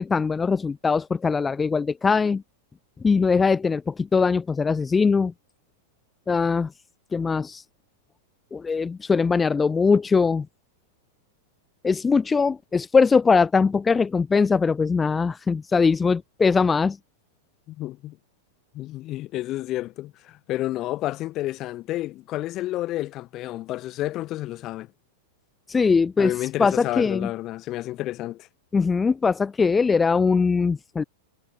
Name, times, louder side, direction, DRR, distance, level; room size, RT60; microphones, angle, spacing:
voice 1, 0.0-2.4 3.0-5.3 6.3-6.7 7.1-7.6 8.5-10.5 11.8-17.0 25.7-27.3 28.7-31.0, left 5 dB, 15° left, 0.9 m, -21 dB
voice 2, 17.7-18.2 18.7-24.9 26.2-28.5, left 16 dB, 40° left, 2.0 m, -30 dB
hypercardioid pair, 110°, 0 cm